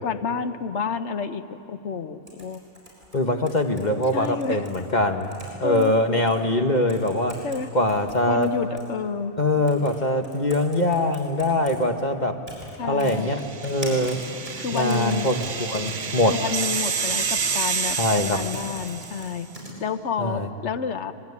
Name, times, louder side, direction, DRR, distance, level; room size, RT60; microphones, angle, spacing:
voice 1, 0.0-2.6 4.1-4.6 5.6-5.9 7.4-7.7 8.3-9.3 12.8-13.4 14.6-15.3 16.3-19.5 19.8-21.1, left 5 dB, 70° left, 10 dB, 1.3 m, -29 dB
sound 1, 2.3-4.8 5.2-5.9 6.3-6.4 6.9-7.6 7.9-8.9 9.7-10.0 10.2-11.8 12.5-12.7 13.0-19.7, right 1 dB, 30° right, 7.5 m, -41 dB
voice 2, 3.1-5.3 5.6-7.4 7.7-8.5 9.4-12.4 12.8-14.2 14.7-16.4 18.0-18.4 20.2-20.5, left 1 dB, 40° left, 5 dB, 1.4 m, -23 dB
sound 2, 13.4-19.3, right 6 dB, 80° right, 1.6 m, -29 dB
25.0 x 21.5 x 9.7 m, 2.7 s
omnidirectional pair, 1.2 m